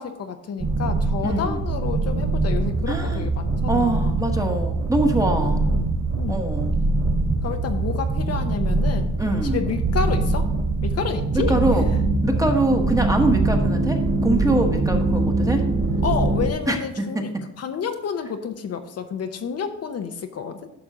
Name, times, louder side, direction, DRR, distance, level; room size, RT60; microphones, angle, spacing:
voice 1, 0.0-4.2 5.4-6.5 7.4-9.1 9.4-10.5 10.8-11.5 16.0-17.3 17.6-20.6, left 6 dB, 50° left, 6 dB, 0.9 m, -30 dB
sound 1, 0.6-16.5, right 3 dB, 45° right, 1.6 m, -23 dB
voice 2, 1.2-1.6 2.9-3.3 3.7-5.7 6.3-6.8 9.2-9.6 11.3-11.9 12.2-15.7 16.7-17.2, right 1 dB, 10° right, 3 dB, 1.3 m, -24 dB
11.0 x 6.1 x 3.9 m, 0.86 s
cardioid pair, 95°, 31 cm